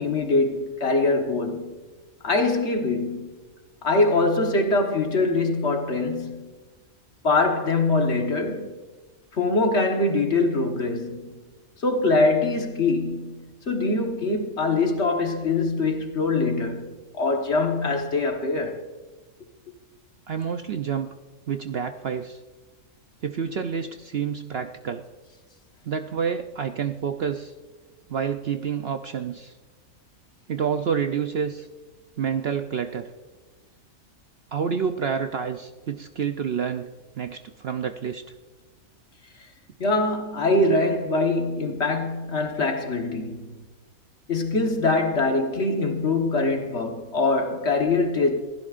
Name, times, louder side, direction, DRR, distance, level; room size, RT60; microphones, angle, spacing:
voice 1, 0.0-1.7 2.2-3.3 3.8-6.5 7.2-8.8 9.3-11.3 11.8-18.8 39.8-43.5 44.3-48.4, left 3 dB, 50° left, 1.6 m, -23 dB
voice 2, 20.3-21.1 21.5-22.4 23.2-25.1 25.9-27.5 28.1-29.5 30.5-31.7 32.2-33.1 34.5-36.9 37.1-38.2, right 7 dB, 55° right, 0.7 m, -28 dB
26.0 x 16.0 x 2.5 m
omnidirectional pair, 1.5 m